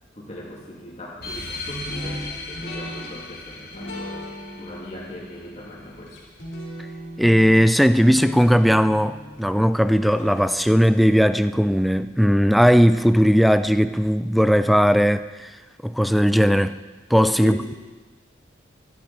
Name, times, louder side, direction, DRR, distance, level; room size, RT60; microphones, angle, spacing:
voice 1, 0.1-6.2 17.4-17.7, equal, 35° left, 2.9 m, -38 dB
sound 1, 1.2-6.2, left 3 dB, 55° left, 1.5 m, -38 dB
sound 2, 1.8-12.9, equal, 80° left, 3.9 m, -39 dB
voice 2, 7.2-15.5 15.8-16.8 17.1-17.6, equal, ahead, 0.3 m, -18 dB
13.0 x 11.5 x 4.3 m
head